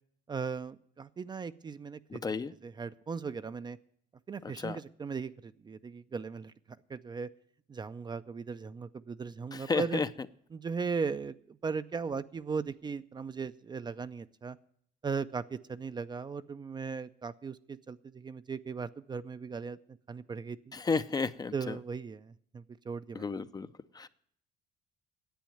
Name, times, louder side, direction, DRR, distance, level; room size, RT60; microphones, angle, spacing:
voice 1, 0.3-2.2 2.6-3.8 4.3-6.5 6.9-7.3 7.7-10.0 10.5-14.6 15.0-19.8 20.1-20.7 21.5-23.4, right 5 dB, 25° right, 12 dB, 0.5 m, -37 dB
voice 2, 2.1-2.5 4.6-4.8 9.5-10.1 20.7-21.8 23.1-23.7 23.9-24.1, left 4 dB, 25° left, 12 dB, 0.5 m, -32 dB
10.5 x 8.4 x 9.1 m, 0.65 s
cardioid pair, 110°, 17 cm